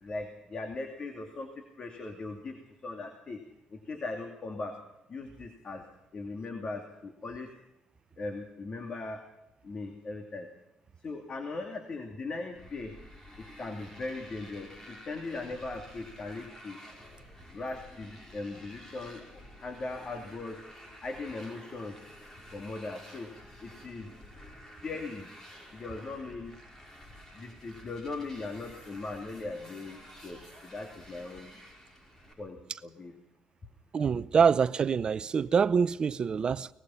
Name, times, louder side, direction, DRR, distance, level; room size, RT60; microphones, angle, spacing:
voice 1, 0.0-3.4 3.7-4.8 5.1-5.9 6.1-7.5 8.2-9.2 9.6-10.5 11.0-12.9 13.4-16.8 17.5-20.6 21.0-22.0 22.5-23.3 23.6-24.1 24.8-25.3 25.7-26.5 27.3-31.5 32.4-33.1, left 3 dB, 40° left, 2.5 m, -39 dB
Motorcycle, 12.6-32.3, equal, 20° left, 5.5 m, -51 dB
voice 2, 33.9-36.7, right 6 dB, 40° right, 0.7 m, -25 dB
23.5 x 19.5 x 5.7 m
cardioid pair, 115°, 2 cm